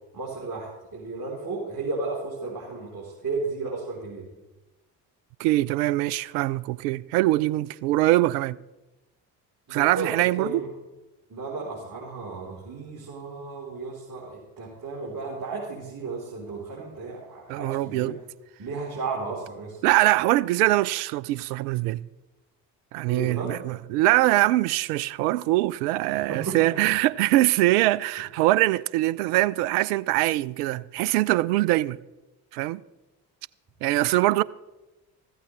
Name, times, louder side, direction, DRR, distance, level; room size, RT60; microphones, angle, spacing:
voice 1, 0.1-4.3 9.7-10.7 11.3-18.1 18.6-19.8 23.1-23.5 26.1-26.6, right 3 dB, 45° right, 4.0 m, -34 dB
voice 2, 5.4-8.6 9.7-10.6 17.5-18.2 19.8-22.0 22.9-32.0 32.5-32.8 33.8-34.4, right 17 dB, 75° right, 0.5 m, -23 dB
14.5 x 14.5 x 3.3 m
hypercardioid pair, 45°, 46 cm